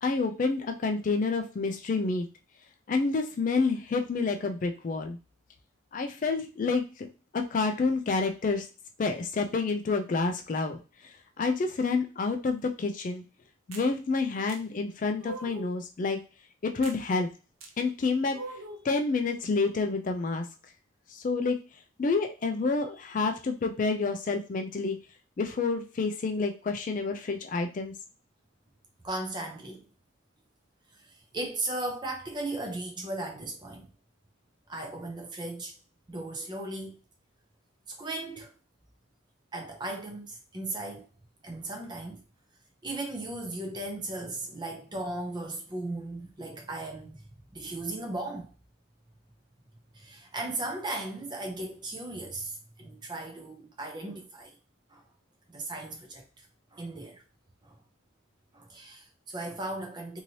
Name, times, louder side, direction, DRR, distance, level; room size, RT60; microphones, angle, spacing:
voice 1, 0.0-2.3 2.9-5.2 5.9-6.9 7.3-8.6 9.0-10.8 11.4-13.2 13.7-16.2 16.6-17.3 17.8-18.4 18.8-20.4 21.1-21.6 22.0-25.0 25.4-27.9, left 4 dB, 40° left, 0.3 m, -28 dB
sound 1, 13.7-13.9 14.5-14.6 15.2-15.8 16.8-17.0 17.6-17.7 18.3-18.9, right 2 dB, 85° right, 0.6 m, -41 dB
voice 2, 29.0-29.9 30.9-33.9 34.7-35.7 36.1-37.0 37.9-38.5 39.5-41.1 41.4-42.2 42.8-47.2 47.5-48.5 49.9-54.6 54.9-55.0 55.5-56.5 56.7-57.2 57.6-57.8 58.5-60.2, right 2 dB, 20° right, 0.6 m, -37 dB
3.0 x 2.7 x 2.7 m
head